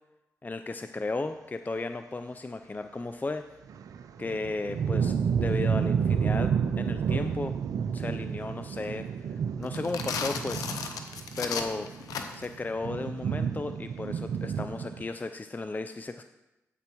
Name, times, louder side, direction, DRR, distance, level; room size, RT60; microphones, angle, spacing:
voice 1, 0.4-3.4 4.2-7.5 7.9-9.3 9.6-10.7 11.4-11.9 12.3-16.2, left 3 dB, 30° left, 9 dB, 0.4 m, -35 dB
sound 1, 3.7-15.0, right 7 dB, 80° right, 0.4 m, -30 dB
sound 2, 9.6-12.6, left 6 dB, 90° left, 0.7 m, -35 dB
9.6 x 8.0 x 3.0 m, 1.0 s
supercardioid pair, 40°, 6 cm